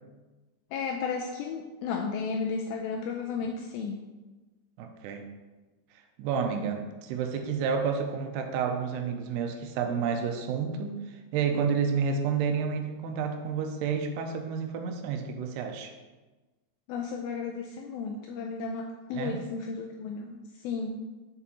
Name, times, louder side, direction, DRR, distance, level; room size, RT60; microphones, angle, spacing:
voice 1, 0.7-4.0 16.9-21.0, left 5 dB, 85° left, 1 dB, 2.1 m, -33 dB
voice 2, 4.8-5.2 6.2-15.9 19.1-19.4, right 6 dB, 85° right, 4 dB, 2.6 m, -30 dB
7.5 x 6.8 x 3.0 m, 1.2 s
omnidirectional pair, 4.8 m